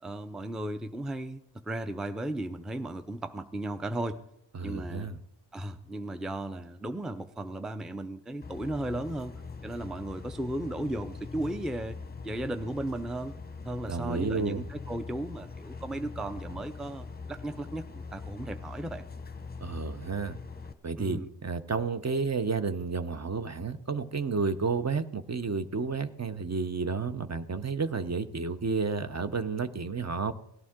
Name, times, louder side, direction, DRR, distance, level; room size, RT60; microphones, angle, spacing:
voice 1, 0.0-4.2 4.6-5.1 5.5-9.3 9.6-12.0 12.2-13.3 13.6-19.0 21.0-21.3, right 1 dB, ahead, 0.5 m, -35 dB
voice 2, 4.5-5.2 13.9-14.7 19.6-20.4 20.8-30.3, right 4 dB, 35° right, 0.8 m, -31 dB
sound 1, 8.4-20.7, left 4 dB, 20° left, 0.9 m, -42 dB
17.5 x 11.5 x 3.7 m
wide cardioid pair, 80°, 44 cm